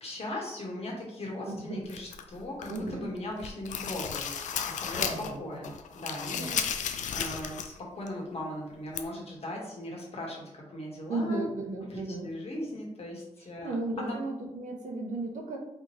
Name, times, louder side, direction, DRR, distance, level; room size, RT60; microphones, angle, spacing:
voice 1, 0.0-4.2 4.6-11.5 11.8-14.2, left 1 dB, 55° left, -2 dB, 1.5 m, -39 dB
voice 2, 1.5-1.8 2.7-3.1 4.9-5.6 6.3-6.6 11.1-12.3 13.6-15.6, right 2 dB, 85° right, 1 dB, 0.8 m, -35 dB
sound 1, 1.9-2.9 3.3-5.4 5.6-7.8 8.1-8.2 9.0-9.1, left 7 dB, 85° left, 0.4 m, -34 dB
4.2 x 3.1 x 3.0 m, 0.93 s
cardioid pair, 70°, 13 cm